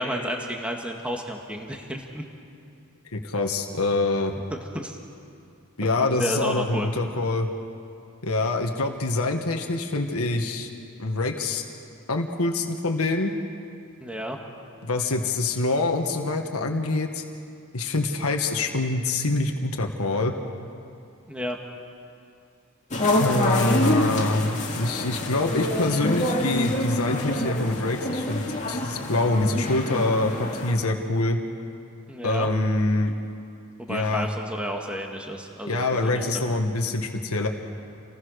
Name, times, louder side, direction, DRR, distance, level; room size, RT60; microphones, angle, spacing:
voice 1, 0.0-2.2 4.7-5.0 6.1-6.9 14.0-14.4 21.3-21.6 32.1-32.5 33.8-36.4, equal, 5° right, 2 dB, 1.8 m, -31 dB
voice 2, 3.1-4.3 5.8-7.5 8.2-10.7 11.0-11.6 12.1-13.3 14.8-17.2 17.7-20.4 23.2-28.4 28.7-31.4 32.2-33.1 33.9-34.3 35.7-37.5, left 2 dB, 75° left, 3 dB, 1.7 m, -25 dB
sound 1, 22.9-30.7, left 1 dB, 35° left, 2.4 m, -26 dB
28.5 x 20.0 x 6.5 m, 2.5 s
head